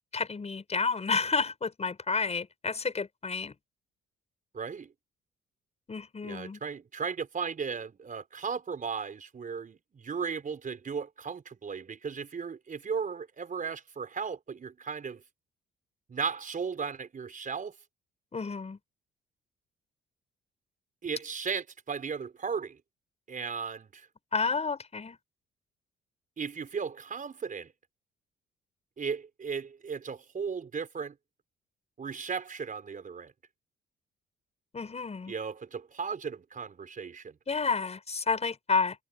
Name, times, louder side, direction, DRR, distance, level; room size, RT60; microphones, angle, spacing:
voice 1, 0.1-3.5 5.9-6.6 18.3-18.8 24.3-25.2 34.7-35.3 37.5-38.9, left 4 dB, 35° left, 6.9 m, -30 dB
voice 2, 4.5-4.9 6.2-15.2 16.1-17.7 21.0-22.8 23.3-24.1 26.4-27.7 29.0-31.1 32.0-33.3 35.3-37.4, right 6 dB, 40° right, 5.1 m, -36 dB
cardioid pair, 90°, 20 cm